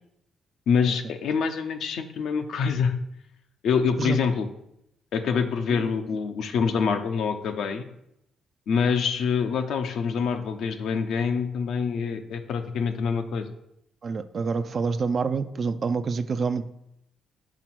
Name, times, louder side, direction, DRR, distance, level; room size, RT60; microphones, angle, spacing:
voice 1, 0.7-3.0 3.6-4.5 5.1-7.8 8.7-13.5, left 6 dB, 75° left, 7 dB, 0.7 m, -25 dB
voice 2, 14.0-16.7, right 5 dB, 45° right, 11 dB, 0.4 m, -27 dB
6.0 x 4.1 x 6.0 m, 0.79 s
cardioid pair, 90°, 0 cm